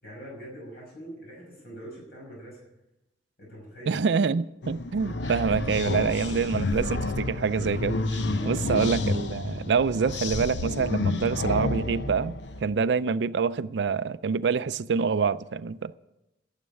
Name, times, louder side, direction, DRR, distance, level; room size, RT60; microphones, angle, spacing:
voice 1, 0.0-2.7 3.4-4.0 8.3-8.7, equal, 60° left, 6.1 m, -43 dB
voice 2, 3.9-12.3 12.6-15.9, right 5 dB, 75° right, 0.4 m, -26 dB
sound 1, 4.6-12.7, left 2 dB, 85° left, 0.8 m, -30 dB
12.5 x 7.4 x 9.8 m
head